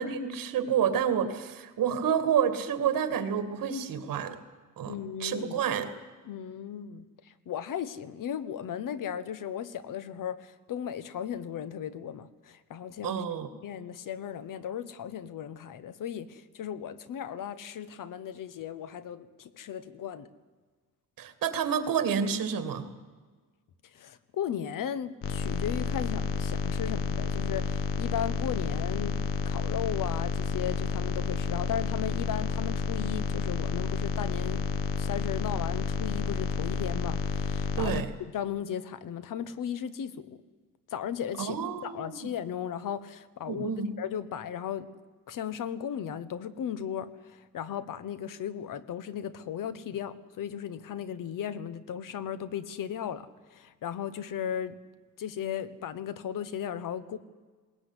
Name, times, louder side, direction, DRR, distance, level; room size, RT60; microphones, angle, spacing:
voice 1, 0.0-4.4 4.8-4.9 5.2-5.9 13.0-13.5 21.2-22.9 37.8-38.1 41.4-42.3 43.4-43.9, right 7 dB, 80° right, 10 dB, 2.4 m, -29 dB
voice 2, 4.8-5.6 6.2-13.3 13.6-20.3 23.9-29.2 29.4-34.7 35.0-40.4 40.9-43.7 44.0-44.9 45.3-54.8 55.2-57.2, left 9 dB, 70° left, 14 dB, 1.3 m, -36 dB
sound 1, 25.2-38.0, left 5 dB, 40° left, 1.3 m, -30 dB
21.0 x 18.5 x 9.9 m, 1.4 s
wide cardioid pair, 155°, 33 cm